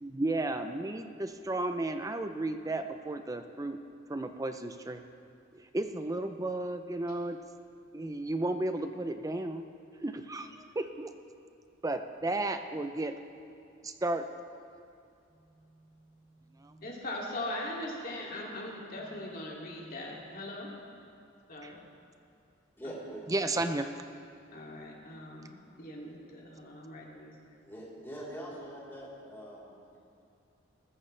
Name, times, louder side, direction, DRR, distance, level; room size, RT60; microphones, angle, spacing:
voice 1, 0.0-3.8 4.1-5.0 5.5-7.4 7.9-9.6 10.0-11.1 11.8-13.1 13.8-14.6 16.6-16.8 21.6-21.7 23.3-23.9, right 2 dB, 15° right, 8 dB, 0.5 m, -33 dB
voice 2, 16.8-20.7 21.5-21.8 22.8-22.9 24.5-27.6, left 1 dB, 45° left, -3 dB, 2.6 m, -40 dB
voice 3, 22.8-23.2 27.6-30.2, right 1 dB, 10° left, -8 dB, 3.6 m, -44 dB
20.5 x 14.5 x 3.3 m, 2.5 s
head